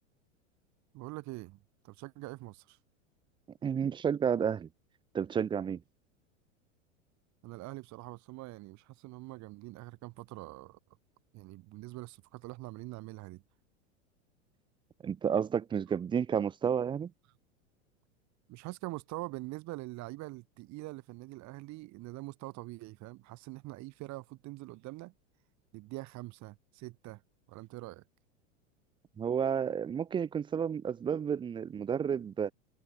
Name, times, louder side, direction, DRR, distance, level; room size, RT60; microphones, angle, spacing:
voice 1, 0.9-2.8 7.4-10.8 11.3-13.4 15.9-16.0 18.5-25.1 25.7-27.2 27.5-28.0, right 20 dB, 50° right, 6.8 m, -44 dB
voice 2, 3.6-4.7 5.1-5.8 15.0-17.1 29.2-32.5, right 7 dB, 15° right, 0.4 m, -31 dB
hypercardioid pair, 110°, 37 cm